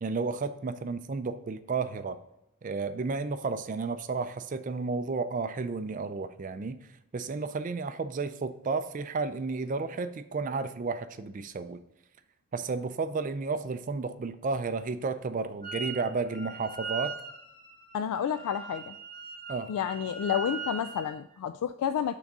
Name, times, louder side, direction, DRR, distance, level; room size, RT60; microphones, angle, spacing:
voice 1, 0.0-2.2 2.6-11.8 12.5-17.2 19.5-19.7, right 4 dB, 35° right, 11 dB, 0.3 m, -32 dB
Wind instrument woodwind instrument, 15.6-16.0 16.3-21.1, right 5 dB, 20° left, 1.5 m, -40 dB
voice 2, 17.9-19.0 19.7-22.2, left 8 dB, 90° left, 10 dB, 0.3 m, -30 dB
6.0 x 3.9 x 5.3 m, 0.86 s
head